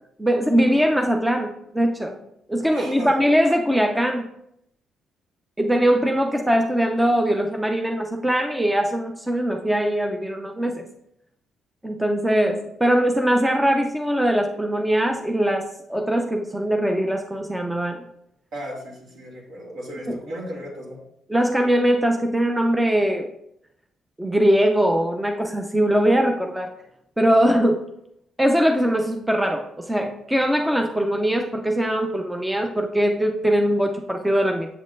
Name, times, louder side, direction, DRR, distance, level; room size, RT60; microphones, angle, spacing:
voice 1, 0.2-2.2 2.5-4.3 5.6-10.9 11.8-18.1 20.1-20.2 21.3-23.3 24.2-26.7 27.2-27.9 28.4-34.7, equal, 10° right, 3 dB, 0.5 m, -21 dB
voice 2, 2.7-3.3 18.5-21.0, equal, 65° right, -2 dB, 2.5 m, -35 dB
7.5 x 6.3 x 2.6 m, 0.77 s
cardioid pair, 90°, 0 cm